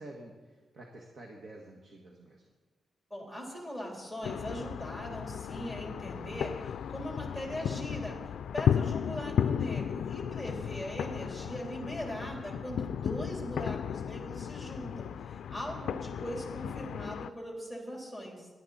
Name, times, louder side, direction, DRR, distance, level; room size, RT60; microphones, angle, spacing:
voice 1, 0.0-2.4, right 2 dB, 50° right, 1 dB, 1.5 m, -49 dB
voice 2, 3.1-18.5, equal, 5° right, -1 dB, 3.5 m, -40 dB
sound 1, 4.2-17.3, left 8 dB, 90° left, 0.4 m, -34 dB
21.5 x 11.5 x 4.2 m, 1.4 s
wide cardioid pair, 165°, 0 cm